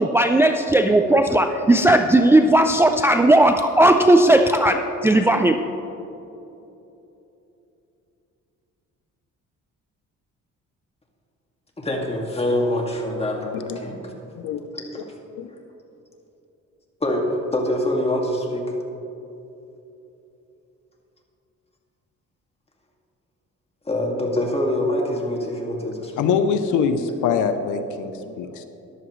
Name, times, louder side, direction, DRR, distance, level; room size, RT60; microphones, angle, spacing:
voice 1, 0.0-5.6, right 1 dB, 10° right, 5 dB, 0.4 m, -16 dB
voice 2, 11.8-14.1 14.7-15.0 17.0-18.8 23.9-26.3, left 1 dB, 20° left, 0 dB, 2.1 m, -25 dB
voice 3, 14.4-14.7 15.4-15.5 26.2-28.6, left 6 dB, 85° left, 9 dB, 0.7 m, -23 dB
14.0 x 11.0 x 3.1 m, 2.9 s
cardioid pair, 90°, 30 cm